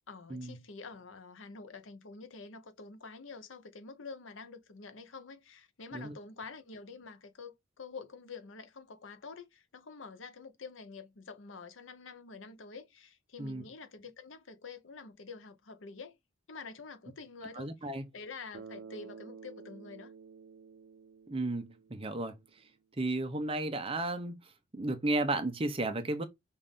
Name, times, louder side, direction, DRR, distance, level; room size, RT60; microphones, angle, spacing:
voice 1, 0.1-16.2 16.5-17.7 18.1-20.1, left 4 dB, 85° left, 0.8 m, -47 dB
voice 2, 17.5-18.1 21.3-22.4 23.0-26.2, right 2 dB, 30° right, 0.7 m, -34 dB
Bass guitar, 18.5-22.5, right 5 dB, 75° right, 0.6 m, -51 dB
5.3 x 2.6 x 3.6 m
head